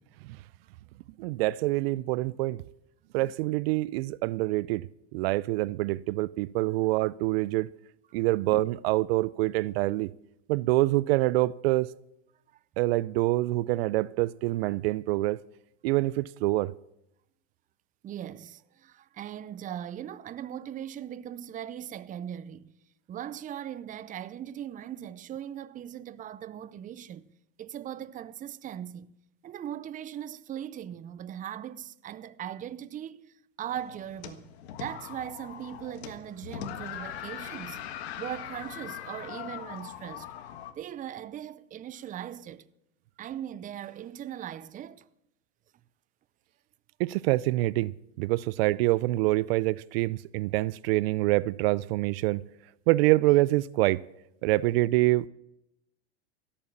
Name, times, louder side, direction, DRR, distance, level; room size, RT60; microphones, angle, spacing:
voice 1, 1.2-2.6 3.1-4.9 5.1-7.7 8.1-10.1 10.5-11.9 12.8-15.4 15.8-16.7 47.0-47.9 48.2-52.4 52.9-54.0 54.4-55.3, right 19 dB, 65° right, 0.5 m, -26 dB
voice 2, 18.0-22.7 23.1-27.2 27.6-29.1 29.4-34.5 34.8-37.9 38.2-40.3 40.8-42.7 43.2-45.1, right 10 dB, 25° right, 0.6 m, -39 dB
sound 1, 33.7-40.7, left 10 dB, 75° left, 1.6 m, -41 dB
16.5 x 8.7 x 7.2 m
supercardioid pair, 110°, 32 cm